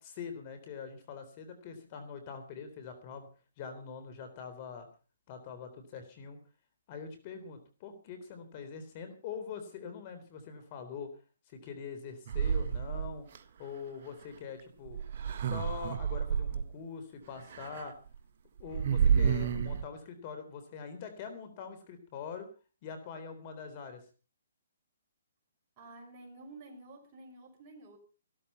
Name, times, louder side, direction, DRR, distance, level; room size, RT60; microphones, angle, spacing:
voice 1, 0.0-3.3 3.6-4.9 5.3-6.4 6.9-11.1 11.5-13.3 13.6-15.0 15.3-17.9 18.6-22.5 22.8-24.0, left 6 dB, 35° left, 8 dB, 3.7 m, -44 dB
sound 1, 12.3-13.4 14.9-16.6 17.5-17.8 18.1-18.2 18.6-19.8, right 7 dB, 50° right, 1.6 m, -29 dB
voice 2, 25.8-28.0, right 2 dB, 30° right, 2 dB, 5.8 m, -51 dB
16.0 x 13.5 x 5.6 m, 0.37 s
hypercardioid pair, 150°, 0 cm